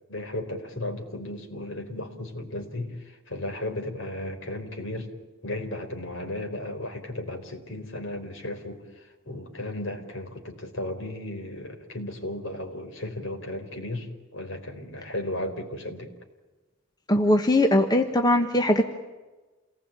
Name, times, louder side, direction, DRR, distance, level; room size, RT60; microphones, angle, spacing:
voice 1, 0.1-5.1 5.4-14.1 14.3-16.1, left 1 dB, 60° left, 5 dB, 4.3 m, -35 dB
voice 2, 17.1-18.8, left 1 dB, 20° left, 5 dB, 1.3 m, -20 dB
28.0 x 19.5 x 8.9 m, 1.2 s
head